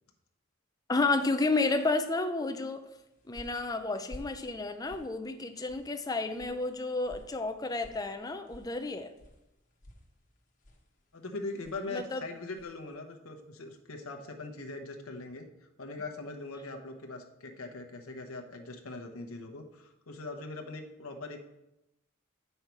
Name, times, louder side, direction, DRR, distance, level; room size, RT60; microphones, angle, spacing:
voice 1, 0.9-2.8 3.3-9.1 11.9-12.2, left 3 dB, 20° left, 7 dB, 0.5 m, -31 dB
sound 1, 2.8-12.9, left 1 dB, 40° left, 1.3 m, -55 dB
voice 2, 11.1-15.4 15.8-21.4, left 3 dB, 85° left, 4 dB, 0.9 m, -41 dB
8.1 x 5.6 x 4.5 m, 0.91 s
head